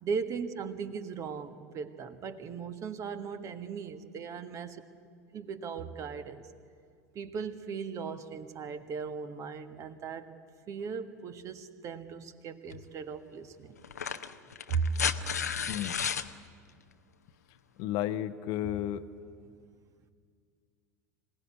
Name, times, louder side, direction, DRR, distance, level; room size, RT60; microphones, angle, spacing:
voice 1, 0.0-4.8 5.3-6.4 7.2-10.3 10.7-13.8 14.7-14.9, right 6 dB, 40° right, 8 dB, 1.6 m, -37 dB
sound 1, 12.7-12.8 13.8-16.3 17.8-17.9, left 7 dB, 80° left, 0.8 m, -33 dB
voice 2, 17.8-19.1, left 12 dB, 50° left, 8 dB, 0.9 m, -32 dB
25.5 x 18.0 x 9.6 m, 2.1 s
figure-of-eight pair, 75°, 9 cm